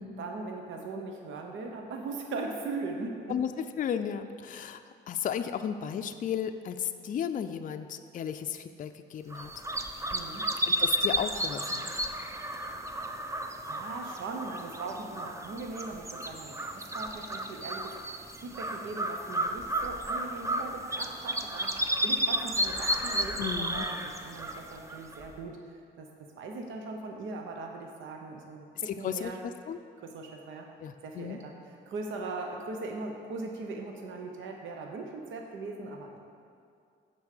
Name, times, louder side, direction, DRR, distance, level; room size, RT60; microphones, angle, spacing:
voice 1, 0.2-3.4 10.1-10.5 12.9-13.0 13.6-18.0 18.4-25.6 26.0-26.1 26.4-29.4 30.0-30.7 31.0-31.5 31.9-36.2, right 3 dB, 75° right, 2 dB, 0.9 m, -39 dB
voice 2, 3.3-4.8 5.1-9.5 10.6-11.9 23.4-23.8 28.9-29.8 30.8-31.4, left 8 dB, 45° left, 8 dB, 0.4 m, -34 dB
sound 1, 9.3-25.4, equal, 15° right, 0.6 m, -33 dB
6.9 x 5.4 x 6.6 m, 2.3 s
cardioid pair, 90°, 20 cm